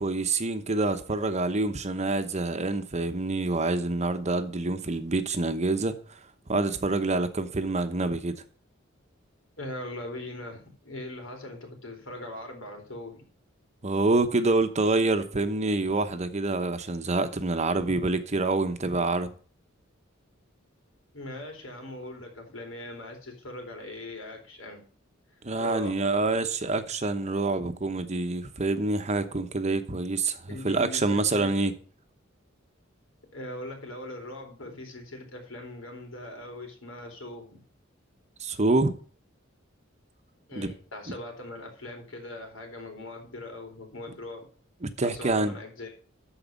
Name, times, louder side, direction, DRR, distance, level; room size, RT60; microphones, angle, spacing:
voice 1, 0.0-6.0 6.5-8.4 13.8-19.3 25.4-31.7 38.4-38.9 40.6-40.7 44.8-45.5, right 2 dB, 35° right, 1.0 m, -26 dB
voice 2, 9.6-13.2 21.1-24.8 25.6-26.0 30.5-31.7 33.3-37.6 40.5-44.4 45.0-45.9, left 1 dB, 80° left, 4.1 m, -40 dB
13.5 x 4.9 x 5.2 m
head